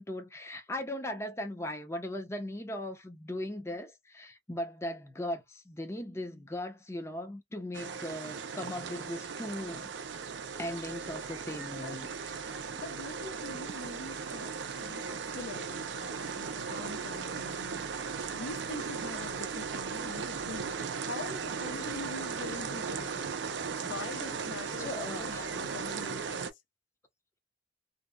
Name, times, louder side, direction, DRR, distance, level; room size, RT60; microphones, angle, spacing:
voice 1, 0.0-9.9 10.6-12.1 12.4-12.6 24.8-25.5, left 1 dB, 15° left, 0.5 m, -38 dB
sound 1, 7.7-26.5, right 5 dB, 70° right, 0.4 m, -37 dB
voice 2, 12.7-14.5 14.8-17.9 18.3-20.7 21.0-23.3 23.8-26.5, left 3 dB, 90° left, 0.6 m, -43 dB
2.7 x 2.0 x 2.2 m
head